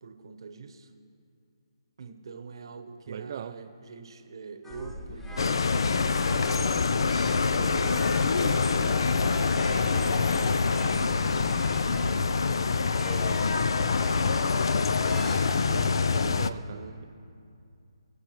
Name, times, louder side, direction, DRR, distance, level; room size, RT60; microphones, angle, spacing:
voice 1, 0.0-0.9 2.0-6.0 6.5-11.9 12.4-12.8 16.1-17.0, right 4 dB, 65° right, 7 dB, 0.9 m, -45 dB
voice 2, 3.1-3.6 15.7-17.0, right 8 dB, 45° right, 8 dB, 0.3 m, -40 dB
sound 1, 4.6-12.3 12.8-13.5 13.8-15.5, left 1 dB, 5° left, 0.5 m, -45 dB
sound 2, 4.7-12.3, left 1 dB, 30° left, 2.7 m, -41 dB
Freight Train in French Quarter New Orleans, 5.4-16.5, left 4 dB, 65° left, 0.4 m, -25 dB
22.0 x 8.5 x 3.0 m, 2.5 s
figure-of-eight pair, 145°, 3 cm